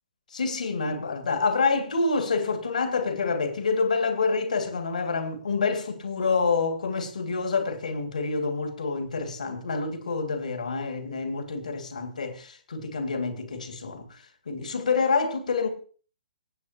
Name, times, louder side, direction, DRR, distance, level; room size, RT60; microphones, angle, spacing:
voice 1, 0.3-15.7, left 4 dB, 60° left, 2.3 m, -27 dB
25.0 x 9.4 x 2.9 m
figure-of-eight pair, 125°, 5 cm